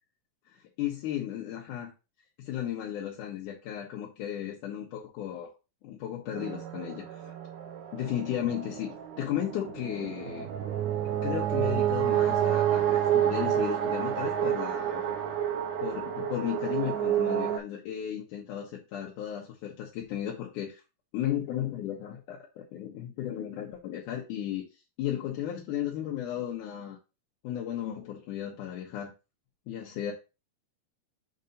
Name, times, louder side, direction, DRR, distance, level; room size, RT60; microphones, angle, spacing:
voice 1, 0.5-1.9 2.4-5.5 5.8-7.3 7.9-10.5 11.2-15.2 15.8-20.8 21.1-24.7 25.0-27.0 27.4-29.1 29.7-30.1, left 11 dB, 75° left, -2 dB, 2.5 m, -35 dB
sound 1, 6.3-17.6, right 10 dB, 80° right, 2.2 m, -29 dB
6.6 x 2.7 x 5.2 m, 0.29 s
omnidirectional pair, 3.6 m